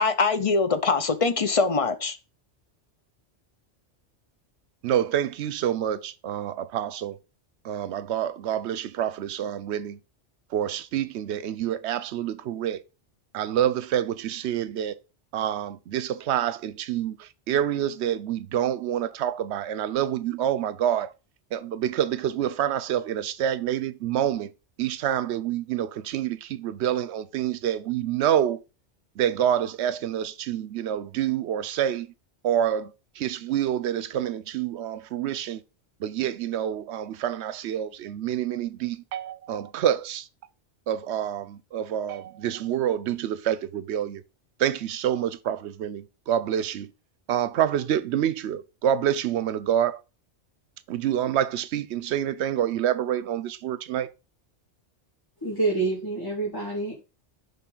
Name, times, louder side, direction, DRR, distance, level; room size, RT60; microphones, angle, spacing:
voice 1, 0.0-2.2, left 4 dB, 35° left, 0.6 m, -23 dB
voice 2, 4.8-7.2 7.6-10.0 10.5-12.8 13.3-15.0 15.3-21.1 21.5-24.5 24.8-28.6 29.2-32.1 32.4-35.6 36.0-40.3 40.9-44.2 44.6-46.9 47.3-50.0 50.9-54.1, right 10 dB, 75° right, 0.9 m, -27 dB
voice 3, 55.4-57.0, right 3 dB, 20° left, 1.9 m, -27 dB
10.0 x 3.6 x 3.8 m
omnidirectional pair, 1.2 m